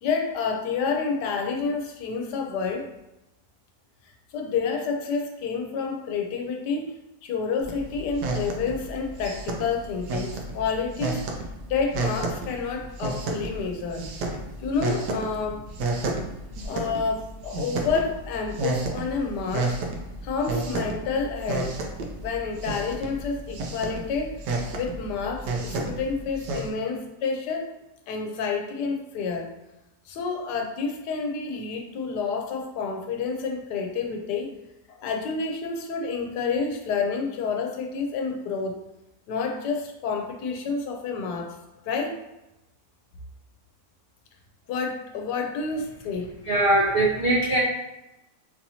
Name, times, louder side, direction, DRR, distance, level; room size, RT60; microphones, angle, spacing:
voice 1, 0.0-2.9 4.3-11.3 11.7-14.1 14.6-15.7 16.6-19.8 20.2-21.7 22.2-24.4 24.7-27.7 28.1-29.5 30.1-34.5 34.9-38.8 39.3-41.5 41.9-42.2 44.7-46.3, left 5 dB, 90° left, 3 dB, 1.2 m, -29 dB
sound 1, 7.6-26.7, right 2 dB, 90° right, 1.2 m, -32 dB
voice 2, 46.5-47.6, right 1 dB, 65° right, -5 dB, 0.5 m, -21 dB
4.2 x 2.7 x 2.7 m, 0.93 s
omnidirectional pair, 1.7 m